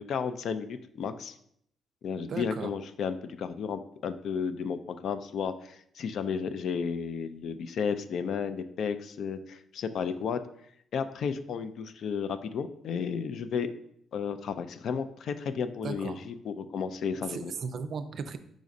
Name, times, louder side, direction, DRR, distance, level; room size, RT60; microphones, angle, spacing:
voice 1, 0.0-1.3 2.0-10.4 10.9-13.7 14.1-17.5, left 6 dB, 65° left, 10 dB, 0.3 m, -33 dB
voice 2, 2.3-2.7 15.8-16.2 17.3-18.4, right 5 dB, 55° right, 10 dB, 0.4 m, -36 dB
5.0 x 3.9 x 2.5 m, 0.70 s
cardioid pair, 90°, 0 cm